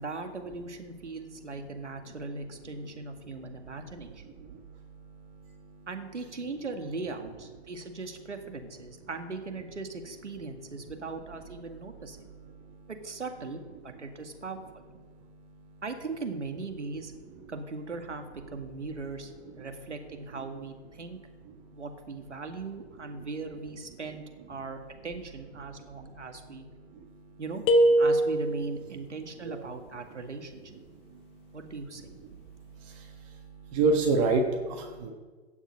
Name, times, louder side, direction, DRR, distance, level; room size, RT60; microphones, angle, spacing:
voice 1, 0.0-4.2 5.9-12.2 12.9-14.8 15.8-17.1 17.5-19.3 19.6-21.2 21.7-26.7 27.4-27.6 28.0-30.6 31.5-32.0, right 3 dB, 90° right, 5 dB, 2.0 m, -39 dB
voice 2, 1.7-5.9 6.4-6.6 7.6-7.7 8.9-9.0 10.4-11.0 11.6-12.9 13.7-14.4 15.0-15.8 16.8-16.9 17.3-17.5 18.5-18.8 19.2-19.9 21.1-21.8 22.8-23.3 24.7-24.9 25.6-27.4 29.4-29.7 30.2-35.1, right 3 dB, 30° right, 3 dB, 1.4 m, -36 dB
sound 1, 27.7-28.8, right 1 dB, 15° left, 0.9 m, -22 dB
16.5 x 7.3 x 5.5 m, 1.3 s
hypercardioid pair, 135°, 34 cm